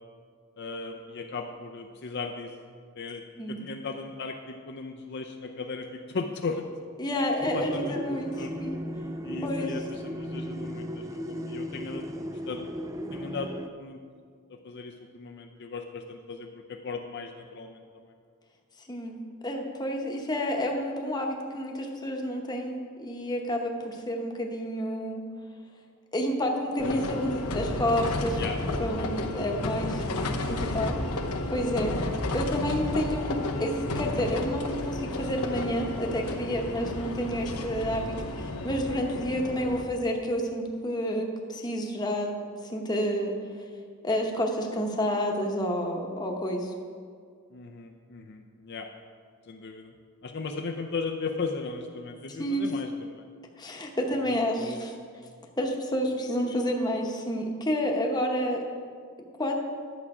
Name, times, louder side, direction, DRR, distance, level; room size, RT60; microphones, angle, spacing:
voice 1, 0.6-2.5 3.0-3.2 3.5-6.7 7.4-8.6 9.2-12.1 12.5-12.7 13.1-14.0 14.5-18.1 28.4-28.6 29.0-29.5 47.5-48.9 49.5-49.9 50.2-53.2 54.1-54.9, left 4 dB, 50° left, 4 dB, 0.5 m, -37 dB
voice 2, 7.0-8.7 9.4-9.7 18.9-19.2 19.4-25.2 26.1-28.4 28.8-31.0 31.5-32.0 32.3-42.3 42.6-43.3 44.0-46.7 52.4-52.7 53.6-54.9 55.6-58.6 59.4-59.5, equal, 20° left, 1 dB, 1.0 m, -29 dB
sound 1, 7.4-13.7, equal, 15° right, 0.4 m, -36 dB
sound 2, 26.8-39.8, left 2 dB, 85° left, 0.9 m, -32 dB
11.0 x 7.3 x 4.8 m, 2.1 s
head